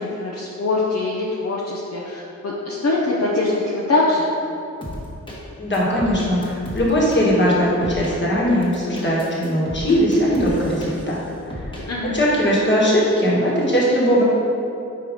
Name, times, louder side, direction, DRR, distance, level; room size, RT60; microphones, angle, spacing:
voice 1, 0.0-4.3 11.9-12.1, left 2 dB, 60° left, -6 dB, 0.8 m, -23 dB
sound 1, 4.8-5.4 5.7-7.2 7.8-8.1 8.6-11.2 11.5-11.8, left 1 dB, 15° left, 1.3 m, -33 dB
voice 2, 5.6-11.2 11.5-11.7 12.0-14.2, equal, 40° left, -5 dB, 1.5 m, -19 dB
4.9 x 4.5 x 5.2 m, 2.7 s
wide cardioid pair, 115°, 30 cm